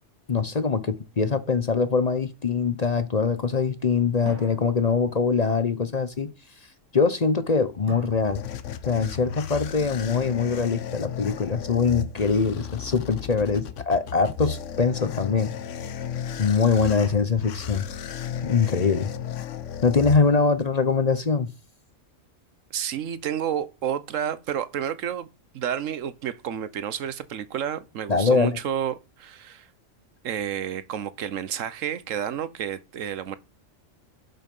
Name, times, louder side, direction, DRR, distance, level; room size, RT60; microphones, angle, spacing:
voice 1, 0.3-6.3 6.9-8.4 8.9-15.5 16.4-17.9 18.4-19.1 19.8-21.5 28.1-28.6, left 5 dB, 40° left, 0.8 m, -23 dB
sound 1, 0.6-2.2 4.3-5.6 7.9-9.0, right 2 dB, 15° right, 2.2 m, -46 dB
sound 2, 7.7-20.7, left 7 dB, 75° left, 1.1 m, -34 dB
voice 2, 22.7-25.3 25.5-29.7 30.2-33.4, right 9 dB, 90° right, 1.2 m, -30 dB
11.5 x 5.9 x 5.4 m
omnidirectional pair, 1.3 m